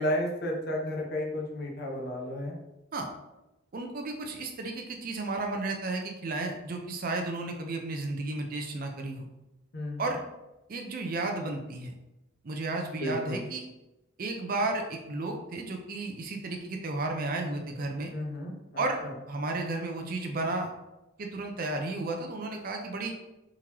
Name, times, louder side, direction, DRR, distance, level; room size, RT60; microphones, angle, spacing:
voice 1, 0.0-2.6 9.7-10.1 13.0-13.4 18.1-19.1, left 1 dB, 50° left, 0 dB, 0.7 m, -33 dB
voice 2, 3.7-9.3 10.0-10.2 10.7-11.9 12.4-13.6 14.2-18.1 18.8-19.0 19.3-20.7 21.2-23.1, right 2 dB, 40° right, 3 dB, 0.4 m, -33 dB
3.6 x 3.0 x 2.9 m, 0.96 s
head